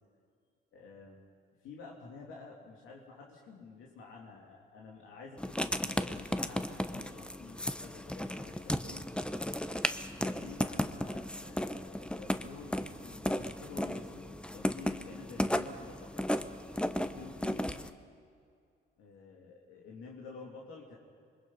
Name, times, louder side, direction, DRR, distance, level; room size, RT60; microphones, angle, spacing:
voice 1, 0.7-1.3 1.6-9.1 10.1-16.3 16.8-17.8 19.0-21.0, left 4 dB, 90° left, -2 dB, 2.8 m, -50 dB
Writing, 5.4-17.9, left 1 dB, 5° left, 1.0 m, -35 dB
27.0 x 22.0 x 5.6 m, 2.3 s
cardioid pair, 90°, 20 cm